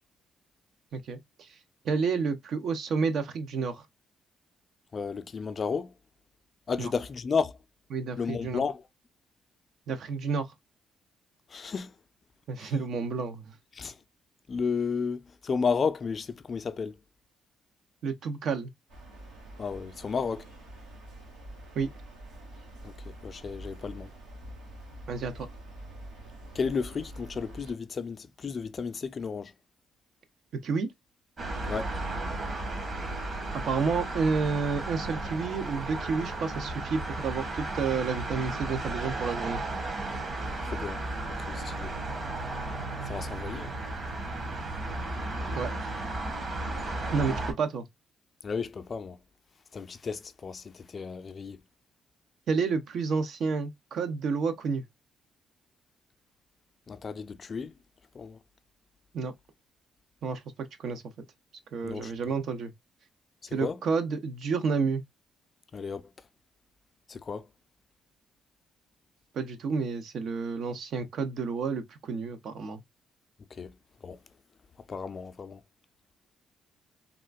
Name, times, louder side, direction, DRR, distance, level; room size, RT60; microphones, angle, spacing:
voice 1, 0.9-1.5 1.8-3.8 6.8-6.9 7.9-8.6 9.9-10.5 12.5-13.5 18.0-18.7 21.7-21.9 25.1-25.5 30.6-30.9 33.5-39.6 45.5-45.7 47.1-47.8 52.5-54.8 59.1-59.3 60.2-60.4 60.8-61.0 61.7-62.7 63.5-65.0 69.3-72.8, right 5 dB, 65° right, 0.7 m, -30 dB
voice 2, 4.9-5.9 6.7-7.6 8.2-8.8 11.5-11.9 12.6-12.7 13.7-14.0 14.5-17.0 19.6-20.5 22.8-24.1 26.5-29.5 31.7-31.9 40.6-41.0 41.4-42.0 43.0-43.8 48.4-49.2 49.7-51.6 56.9-57.8 58.1-58.4 61.8-62.1 63.4-63.8 65.7-66.0 67.1-67.5 73.5-73.7 74.0-74.2 74.9-75.6, left 5 dB, 40° left, 0.4 m, -33 dB
sound 1, 18.9-27.7, right 1 dB, 85° right, 1.6 m, -46 dB
sound 2, 31.4-47.5, right 2 dB, 45° right, 1.3 m, -34 dB
3.6 x 2.4 x 2.3 m
cardioid pair, 90°, 0 cm